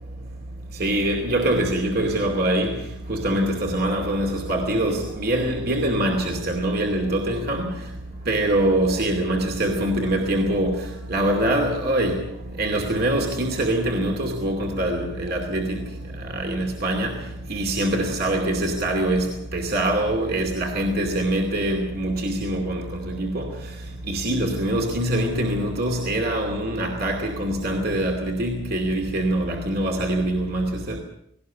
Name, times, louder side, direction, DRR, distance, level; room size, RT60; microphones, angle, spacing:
voice 1, 0.8-2.8 3.1-7.7 8.3-12.2 12.6-15.8 16.3-17.1 17.5-23.5 24.1-31.0, right 1 dB, 50° right, 2.5 m, -24 dB
19.5 x 18.0 x 8.3 m
head